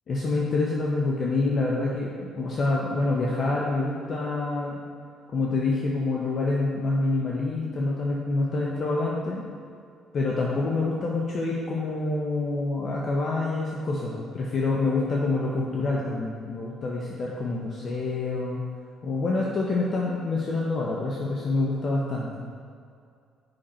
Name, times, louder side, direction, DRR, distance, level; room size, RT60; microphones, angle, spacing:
voice 1, 0.1-4.8 5.3-9.4 10.1-18.6 19.0-22.4, left 3 dB, 50° left, -3 dB, 1.0 m, -27 dB
7.9 x 5.8 x 4.4 m, 2.3 s
cardioid pair, 95°, 0 cm